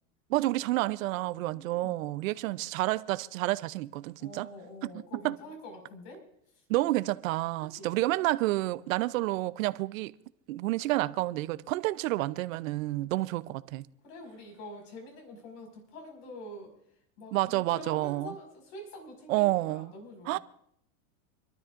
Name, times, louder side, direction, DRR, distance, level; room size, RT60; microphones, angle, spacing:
voice 1, 0.3-4.5 4.8-5.4 6.7-10.1 10.5-13.8 17.3-18.3 19.3-19.9 20.3-20.4, right 18 dB, 70° right, 0.7 m, -29 dB
voice 2, 1.5-2.0 4.2-6.3 7.6-8.0 14.0-16.7 17.2-20.4, left 1 dB, 60° left, 5.7 m, -46 dB
28.0 x 12.5 x 2.6 m
supercardioid pair, 150°, 42 cm